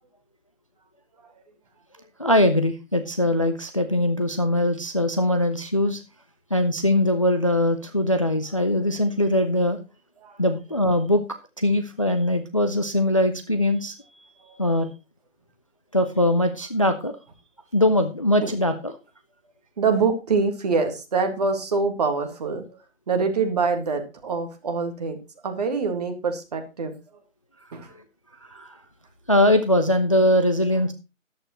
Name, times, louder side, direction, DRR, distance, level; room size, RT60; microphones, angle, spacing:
voice 1, 2.2-6.0 6.5-9.8 10.4-11.2 11.6-13.9 14.6-14.9 15.9-17.2 17.7-18.9 28.5-28.8 29.3-30.9, left 1 dB, 25° left, 9 dB, 0.6 m, -21 dB
voice 2, 19.8-22.8 23.1-27.0 27.7-27.9, right 4 dB, 30° right, 6 dB, 1.9 m, -25 dB
13.5 x 11.5 x 3.0 m, 0.27 s
figure-of-eight pair, 155°, 40 cm